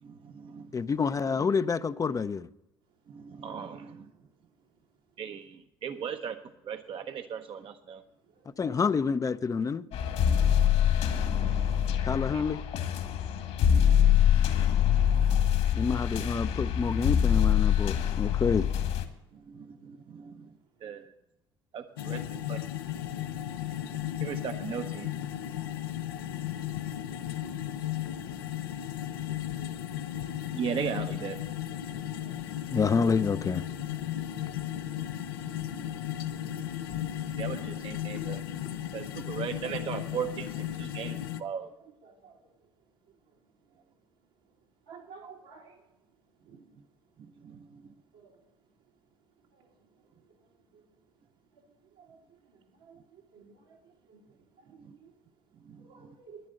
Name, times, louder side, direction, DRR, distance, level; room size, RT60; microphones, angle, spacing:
voice 1, 0.0-0.7 3.1-4.1 5.2-6.4 6.6-8.0 10.9-11.7 12.3-12.4 19.3-20.5 20.8-21.0 21.7-22.6 24.2-25.1 30.5-31.4 34.4-34.8 35.4-35.9 36.5-37.1 37.4-38.4 38.9-41.7 47.4-47.8 54.8-54.9 55.7-56.1, right 7 dB, 50° right, 0.8 m, -38 dB
voice 2, 0.7-2.5 8.6-9.9 12.1-12.6 15.7-18.7 32.7-33.6, left 5 dB, 30° left, 0.5 m, -28 dB
sound 1, 9.9-19.0, left 9 dB, 65° left, 1.9 m, -25 dB
sound 2, 22.0-41.4, left 11 dB, 85° left, 0.7 m, -35 dB
voice 3, 44.9-45.7 52.0-52.1 52.9-53.0 53.3-53.5 54.1-54.2 55.9-56.4, right 6 dB, 85° right, 2.9 m, -49 dB
11.0 x 10.5 x 6.4 m
hypercardioid pair, 65°, 12 cm